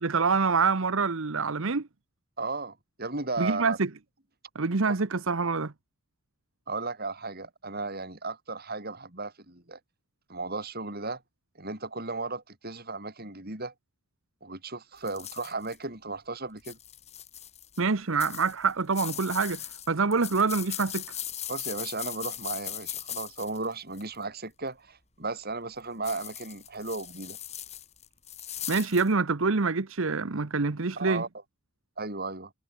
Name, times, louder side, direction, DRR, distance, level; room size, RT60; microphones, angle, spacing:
voice 1, 0.0-1.9 3.4-3.9 4.5-5.7 17.8-21.0 28.7-31.2, right 4 dB, 60° right, 0.9 m, -26 dB
voice 2, 2.4-3.8 4.9-5.0 6.7-9.8 10.3-11.2 11.6-13.7 14.4-16.8 21.5-27.4 31.0-31.3 32.0-32.5, right 3 dB, 45° right, 4.2 m, -35 dB
sound 1, 15.1-15.8 16.6-17.8 18.2-24.2 26.0-29.1, left 11 dB, 30° left, 2.9 m, -39 dB
head